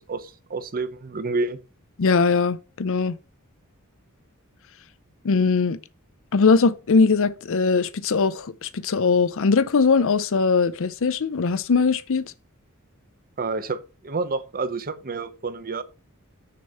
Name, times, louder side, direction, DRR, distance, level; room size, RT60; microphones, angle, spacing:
voice 1, 0.0-1.6 13.4-15.8, right 3 dB, 40° right, 0.8 m, -29 dB
voice 2, 2.0-3.2 5.2-5.8 6.3-12.2, left 4 dB, 65° left, 0.6 m, -20 dB
6.6 x 5.3 x 5.5 m
head